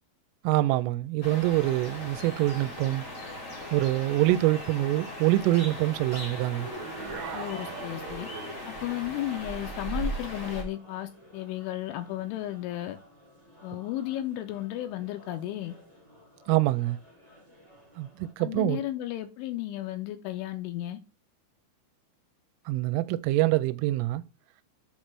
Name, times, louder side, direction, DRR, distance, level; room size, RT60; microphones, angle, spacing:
voice 1, 0.4-3.0 3.7-6.7 16.5-17.0 18.0-18.8 22.7-24.2, right 17 dB, 85° right, 3.0 m, -25 dB
sound 1, 1.2-10.6, equal, 65° left, 1.0 m, -38 dB
sound 2, 1.3-18.3, left 1 dB, 25° left, 0.8 m, -55 dB
sound 3, 6.4-8.8, right 4 dB, 60° right, 1.8 m, -40 dB
voice 2, 7.3-8.3 8.7-13.0 13.6-15.8 18.4-21.0, left 14 dB, 85° left, 3.0 m, -34 dB
8.2 x 3.2 x 5.9 m
omnidirectional pair, 5.7 m